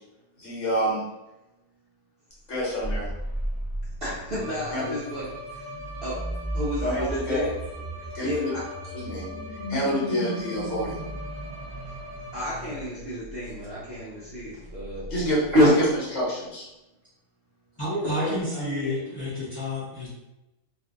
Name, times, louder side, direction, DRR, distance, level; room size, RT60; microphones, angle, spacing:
voice 1, 0.4-1.0 2.5-3.1 4.7-4.9 6.8-7.4 8.1-8.5 8.9-11.0 15.1-15.9 16.1-16.6, equal, 55° left, -7 dB, 1.1 m, -28 dB
sound 1, 2.7-16.0, right 1 dB, 5° left, 0.8 m, -36 dB
voice 2, 4.0-5.3 5.5-5.7 6.0-6.2 6.5-7.5 8.0-8.6 12.3-15.1 15.5-15.7 17.9-19.0, equal, 55° right, -9 dB, 0.7 m, -28 dB
Bowed string instrument, 4.4-12.7, left 1 dB, 80° right, 1.1 m, -42 dB
voice 3, 17.8-20.1, left 1 dB, 35° left, -12 dB, 0.4 m, -30 dB
2.6 x 2.5 x 2.4 m, 0.96 s
omnidirectional pair, 1.7 m